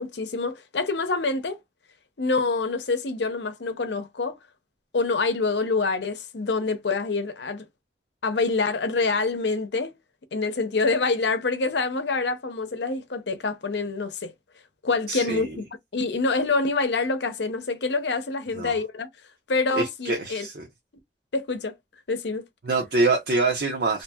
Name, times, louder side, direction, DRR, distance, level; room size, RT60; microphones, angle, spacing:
voice 1, 0.0-1.6 2.2-4.4 4.9-7.6 8.2-9.9 10.3-14.3 14.8-15.6 15.9-19.1 19.5-20.5 21.3-21.8 22.1-22.5, left 3 dB, 75° left, 0.7 m, -26 dB
voice 2, 15.1-15.6 18.5-18.7 19.7-20.6 22.6-24.0, right 3 dB, 60° right, 0.7 m, -25 dB
2.7 x 2.7 x 2.3 m
head